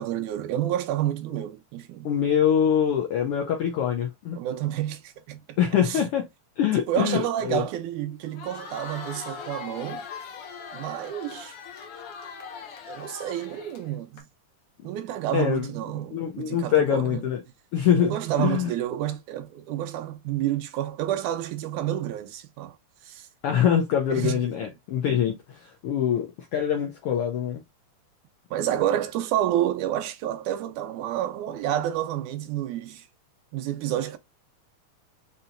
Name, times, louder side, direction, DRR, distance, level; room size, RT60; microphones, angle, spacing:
voice 1, 0.0-2.1 4.3-5.6 5.8-6.0 6.9-10.0 10.7-11.6 12.9-14.3 14.8-17.2 18.0-22.8 23.0-23.3 24.1-24.4 28.5-33.1 33.5-34.2, right 12 dB, 85° right, 2.1 m, -29 dB
voice 2, 2.0-4.4 5.6-6.3 6.6-7.6 15.3-15.7 16.1-17.4 17.7-18.7 23.4-27.6, left 9 dB, 90° left, 1.2 m, -24 dB
Crowd, 8.2-14.2, left 6 dB, 65° left, 1.5 m, -40 dB
5.4 x 2.8 x 2.5 m
omnidirectional pair, 3.4 m